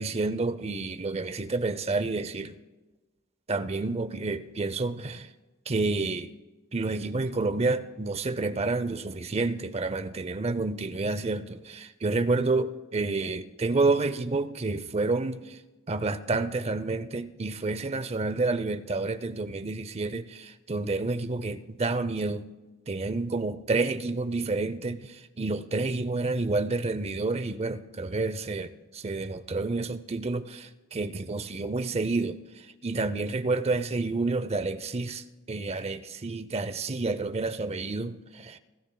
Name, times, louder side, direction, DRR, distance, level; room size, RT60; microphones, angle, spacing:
voice 1, 0.0-2.5 3.5-5.3 5.7-6.3 6.7-15.6 15.9-22.4 22.9-32.4 32.8-38.6, right 3 dB, 30° right, 0.6 m, -29 dB
29.5 x 13.5 x 2.3 m
head